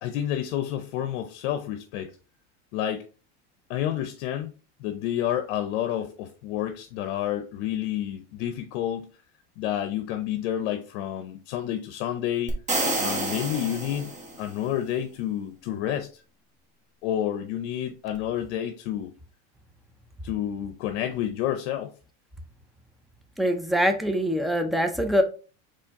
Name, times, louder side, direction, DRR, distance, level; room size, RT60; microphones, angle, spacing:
voice 1, 0.0-2.1 2.7-3.0 3.7-4.5 4.8-9.1 9.6-12.6 13.0-14.1 14.4-16.2 17.0-19.1 20.2-21.9, left 11 dB, 75° left, 0.7 m, -29 dB
sound 1, 12.5-14.6, right 2 dB, 20° right, 1.1 m, -29 dB
voice 2, 23.4-25.2, equal, ahead, 0.4 m, -23 dB
4.3 x 3.1 x 3.5 m
supercardioid pair, 125°, 35 cm